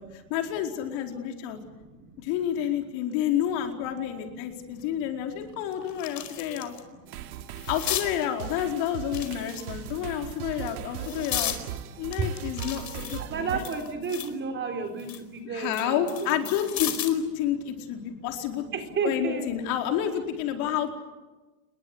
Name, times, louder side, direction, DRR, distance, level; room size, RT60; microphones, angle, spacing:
voice 1, 0.3-1.6 2.2-6.7 7.7-11.5 12.0-13.6 15.5-18.7 19.0-20.9, left 10 dB, 45° left, 4 dB, 4.6 m, -29 dB
voice 2, 1.5-2.8 3.6-7.7 8.9-9.0 9.5-10.6 11.9-12.6 13.2-16.4 16.8-16.9 18.0-18.2 18.7-19.5 20.6-20.7, right 5 dB, 25° right, 5 dB, 4.2 m, -36 dB
sound 1, 4.8-4.9 5.4-6.8 7.2-8.1 9.0-9.9 10.5-11.6 12.1-14.4 14.8-17.2 18.6-18.8, left 11 dB, 85° left, 4.9 m, -35 dB
sound 2, 7.1-13.7, right 11 dB, 65° right, 2.8 m, -39 dB
29.5 x 22.0 x 8.3 m, 1.2 s
supercardioid pair, 145°, 48 cm